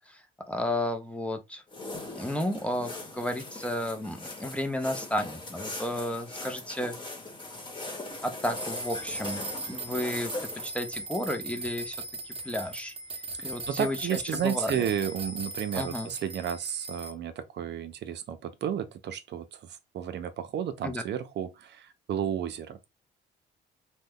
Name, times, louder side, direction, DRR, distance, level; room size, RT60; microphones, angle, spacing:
voice 1, 0.1-1.6 2.1-6.9 8.2-10.3 10.6-12.0 12.2-12.9 13.4-14.7 15.7-16.1 20.8-21.0, left 1 dB, 5° left, 0.6 m, -32 dB
sound 1, 1.7-10.7, left 2 dB, 25° left, 1.1 m, -40 dB
sound 2, 8.4-17.1, right 2 dB, 30° right, 0.8 m, -39 dB
voice 2, 13.4-22.8, right 9 dB, 60° right, 0.5 m, -32 dB
3.0 x 2.1 x 3.5 m
cardioid pair, 90°, 20 cm